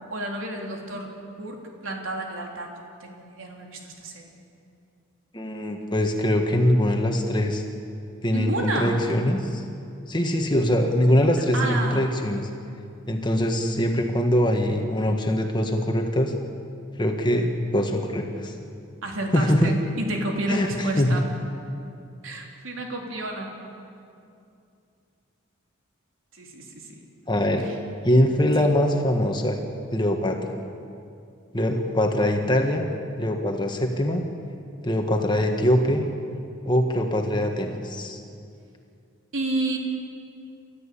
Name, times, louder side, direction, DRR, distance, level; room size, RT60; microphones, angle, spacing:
voice 1, 0.1-1.6 1.8-2.7 3.0-4.3 8.3-9.0 11.5-12.1 19.0-21.3 22.2-23.5 26.3-27.1 27.6-27.8 28.6-28.7 39.3-39.8, right 1 dB, 75° right, 1 dB, 3.5 m, -30 dB
voice 2, 5.3-7.6 8.2-9.6 10.1-12.4 13.1-16.3 17.0-18.5 19.3-19.7 20.5-21.1 27.3-27.7 28.0-29.6 29.9-30.5 31.5-32.9 33.2-34.2 34.8-36.0 36.6-38.2, left 1 dB, 20° left, 3 dB, 1.6 m, -23 dB
30.0 x 13.5 x 8.5 m, 2.5 s
head